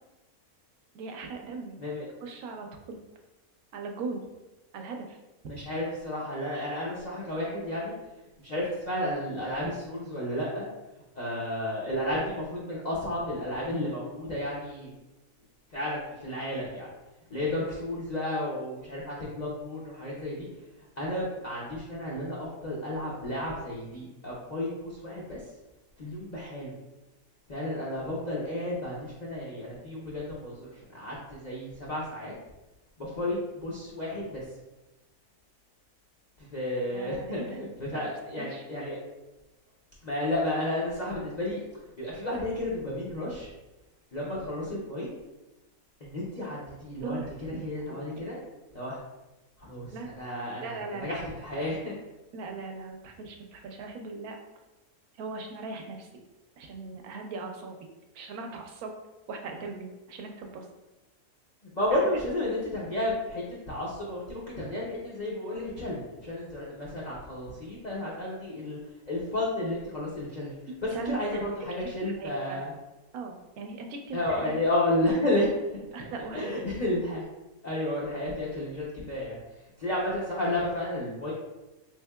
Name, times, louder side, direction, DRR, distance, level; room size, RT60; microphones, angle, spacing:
voice 1, 0.9-1.8 2.2-3.0 3.7-4.3 4.7-5.2 36.9-37.6 37.9-38.1 38.4-38.6 47.0-47.6 47.9-48.2 49.9-50.1 50.6-51.2 51.5-51.6 52.3-54.4 55.2-56.1 56.6-57.8 58.1-58.9 59.3-60.7 61.9-62.1 70.9-71.2 71.8-71.9 72.2-72.6 73.1-74.5 75.9-76.6, right 4 dB, 80° right, 3 dB, 1.0 m, -39 dB
voice 2, 5.5-7.9 8.4-10.7 11.2-14.9 15.7-16.9 17.3-20.5 21.0-25.4 26.0-26.7 27.5-32.3 33.0-34.4 36.4-39.0 40.0-41.6 42.0-43.5 44.1-45.1 46.0-48.4 48.7-49.0 49.6-51.9 61.7-68.8 69.1-70.5 70.8-72.7 74.1-75.8 76.3-77.2 77.6-79.4 79.8-81.3, left 1 dB, 60° left, -6 dB, 0.4 m, -32 dB
3.5 x 3.3 x 2.2 m, 1.0 s
omnidirectional pair, 1.6 m